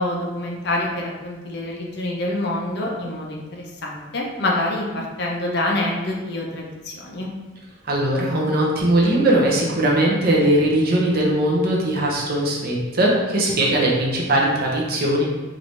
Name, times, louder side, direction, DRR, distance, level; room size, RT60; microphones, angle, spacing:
voice 1, 0.0-7.3, left 1 dB, 50° left, -1 dB, 0.7 m, -26 dB
voice 2, 7.9-15.2, right 1 dB, 45° right, -3 dB, 0.8 m, -19 dB
5.0 x 2.6 x 3.2 m, 1.2 s
head